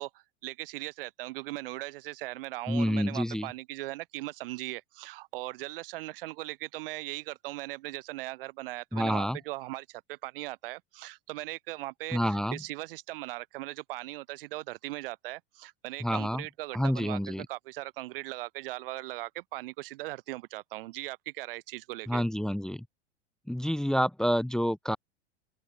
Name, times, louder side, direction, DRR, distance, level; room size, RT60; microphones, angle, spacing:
voice 1, 0.0-22.2, right 19 dB, 50° right, 1.1 m, -39 dB
voice 2, 2.7-3.5 8.9-9.4 12.1-12.6 16.0-16.4 16.7-17.5 22.1-22.8 23.5-25.0, equal, ahead, 0.9 m, -28 dB
open air
figure-of-eight pair, 90°, 35 cm